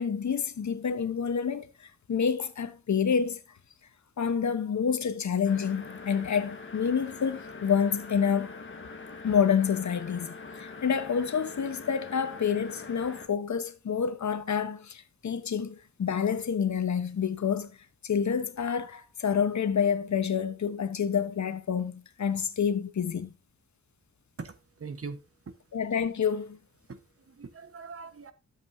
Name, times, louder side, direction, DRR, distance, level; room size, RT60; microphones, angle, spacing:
voice 1, 0.0-3.4 4.2-8.5 9.2-17.7 18.0-23.3 25.7-26.6, left 7 dB, 65° left, 1.1 m, -28 dB
sound 1, 5.4-13.3, left 4 dB, 40° left, 1.5 m, -43 dB
voice 2, 24.4-25.5 26.9-27.0 27.3-28.3, right 4 dB, 45° right, 1.3 m, -42 dB
12.5 x 7.6 x 2.7 m
wide cardioid pair, 105°, 31 cm